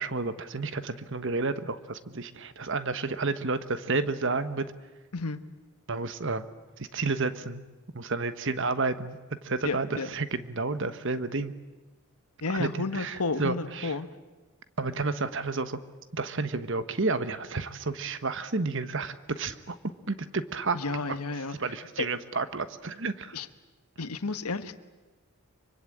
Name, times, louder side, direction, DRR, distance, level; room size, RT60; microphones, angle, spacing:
voice 1, 0.0-4.7 5.9-6.5 6.8-7.6 7.9-9.2 9.4-11.5 12.5-13.9 14.8-15.8 16.1-19.8 20.1-20.8 21.1-21.2 21.6-23.4, right 3 dB, 55° right, 12 dB, 1.2 m, -31 dB
voice 2, 9.6-10.1 12.4-14.1 20.7-21.5 22.0-22.1 23.3-23.5 24.0-24.8, left 3 dB, 90° left, 10 dB, 1.4 m, -31 dB
25.0 x 24.5 x 8.7 m, 1.2 s
head